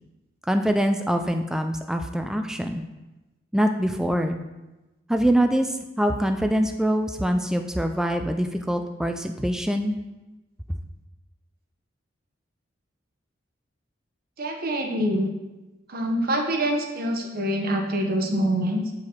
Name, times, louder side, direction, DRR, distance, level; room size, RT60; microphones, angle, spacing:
voice 1, 0.5-2.8 3.5-4.4 5.1-10.0 10.7-10.8, equal, 5° right, 6 dB, 0.3 m, -24 dB
voice 2, 14.4-15.3 15.9-18.9, equal, 50° right, 4 dB, 1.0 m, -25 dB
7.7 x 4.8 x 4.3 m, 1.1 s
head